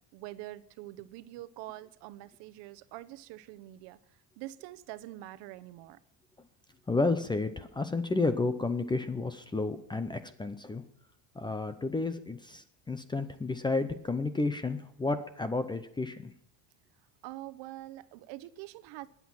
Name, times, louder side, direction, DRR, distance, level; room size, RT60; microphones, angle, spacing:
voice 1, 0.0-6.0 17.2-19.1, right 16 dB, 65° right, 14 dB, 0.9 m, -45 dB
voice 2, 6.9-10.8 11.3-16.3, left 3 dB, 10° left, 11 dB, 0.6 m, -31 dB
21.0 x 8.4 x 6.0 m, 0.72 s
cardioid pair, 150°, 45 cm